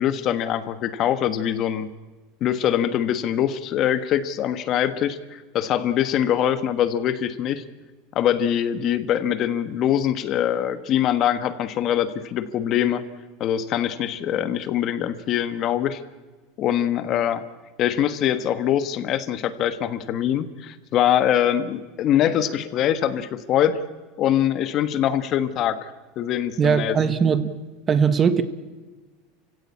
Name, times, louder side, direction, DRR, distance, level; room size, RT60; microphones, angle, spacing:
voice 1, 0.0-1.9 2.4-7.6 8.1-13.0 13.4-16.0 16.6-17.4 17.8-23.8 24.2-27.0, left 10 dB, 40° left, 1.4 m, -23 dB
voice 2, 26.6-27.5 27.9-28.4, right 6 dB, 25° right, 1.3 m, -19 dB
29.5 x 16.5 x 8.6 m
supercardioid pair, 150°, 0 cm